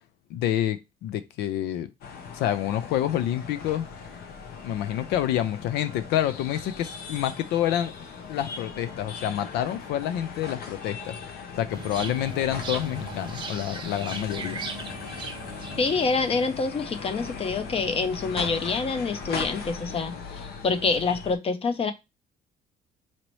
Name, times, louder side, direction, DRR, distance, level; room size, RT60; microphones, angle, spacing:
voice 1, 0.3-1.9 2.3-3.9 4.6-7.9 8.3-14.6, left 11 dB, 85° left, 0.5 m, -28 dB
sound 1, 2.0-21.4, left 5 dB, 65° left, 0.8 m, -39 dB
sound 2, 11.7-16.7, right 4 dB, 25° right, 0.7 m, -38 dB
voice 2, 15.8-20.2 20.6-21.9, left 4 dB, 35° left, 0.6 m, -26 dB
4.1 x 2.9 x 3.1 m
cardioid pair, 110°, 17 cm